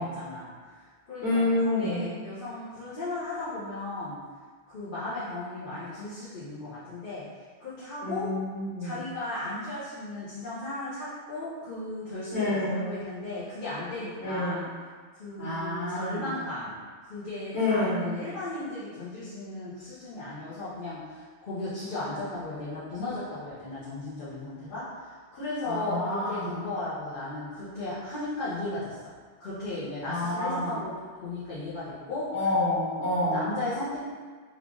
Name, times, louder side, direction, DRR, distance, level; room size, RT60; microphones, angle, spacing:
voice 1, 0.0-4.2 4.7-7.2 7.6-8.3 8.8-14.6 15.1-29.0 29.4-30.9 31.2-32.5 33.2-34.0, left 2 dB, 50° left, -12 dB, 1.0 m, -36 dB
voice 2, 1.2-2.1 8.0-8.9 12.3-12.9 14.2-14.6 15.4-16.3 17.5-18.2 25.6-26.6 30.1-30.8 32.3-33.5, left 2 dB, 75° left, -10 dB, 1.7 m, -28 dB
3.2 x 2.4 x 3.8 m, 1.5 s
omnidirectional pair, 1.1 m